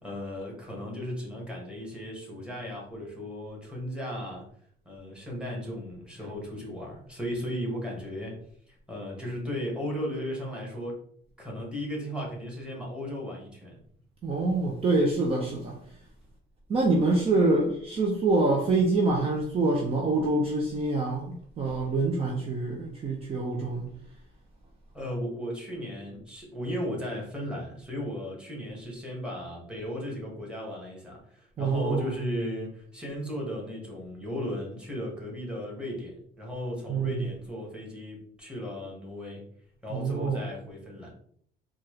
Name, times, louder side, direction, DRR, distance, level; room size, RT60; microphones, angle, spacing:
voice 1, 0.0-4.4 4.8-8.4 8.9-11.0 11.4-13.8 24.9-39.4 39.8-41.1, equal, 5° right, 1.5 m, -36 dB
voice 2, 14.2-15.8 16.7-23.9 31.6-32.2 36.9-37.3 39.9-40.5, right 3 dB, 35° right, 0.6 m, -26 dB
4.2 x 2.4 x 3.1 m
cardioid pair, 110°, 17 cm